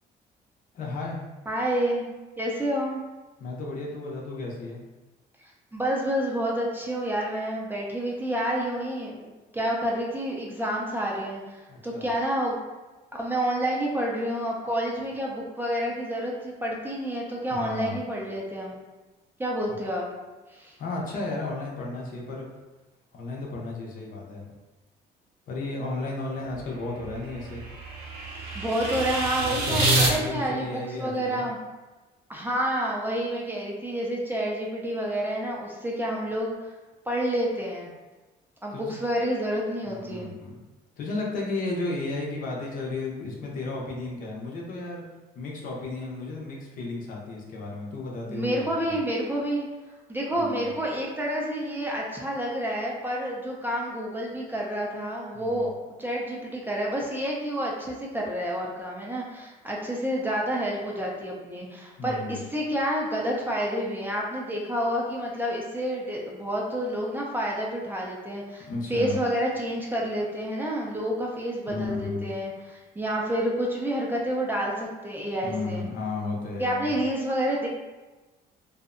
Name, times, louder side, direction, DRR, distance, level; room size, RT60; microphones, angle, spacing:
voice 1, 0.7-1.2 3.4-4.8 11.7-12.1 17.5-18.0 20.8-22.5 23.1-24.5 25.5-27.6 29.4-31.5 38.7-39.0 39.9-40.6 41.0-45.0 45.4-49.0 50.3-50.7 55.3-55.6 62.0-62.4 68.7-69.2 71.7-72.3 75.4-77.1, left 3 dB, 55° left, -2 dB, 0.6 m, -33 dB
voice 2, 1.5-2.0 2.4-3.0 5.7-12.6 13.1-18.8 19.4-20.1 20.5-20.8 28.5-31.6 32.3-36.7 37.1-37.9 38.6-40.3 48.3-49.7 50.1-55.7 56.0-75.8 76.6-77.7, equal, 10° right, -3 dB, 0.4 m, -29 dB
sound 1, 26.5-30.1, right 2 dB, 80° right, 0.6 m, -27 dB
2.6 x 2.0 x 2.4 m, 1.2 s
cardioid pair, 110°, 17 cm